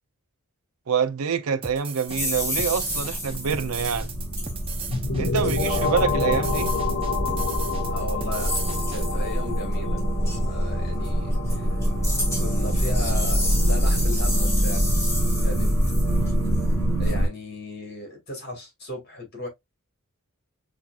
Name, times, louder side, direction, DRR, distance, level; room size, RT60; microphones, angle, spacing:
voice 1, 0.9-4.1 5.2-6.7, right 6 dB, 75° right, 0.6 m, -26 dB
sound 1, 1.6-9.1, right 5 dB, 25° right, 0.7 m, -37 dB
sound 2, 2.1-17.3, equal, 15° left, 2.1 m, -25 dB
sound 3, 4.9-14.5, left 4 dB, 75° left, 1.1 m, -30 dB
voice 2, 5.6-6.0 7.9-8.6 8.9-10.0 10.4-11.9 12.4-15.0 15.4-15.7 17.0-19.5, left 2 dB, 50° left, 2.3 m, -36 dB
5.9 x 2.6 x 2.4 m
head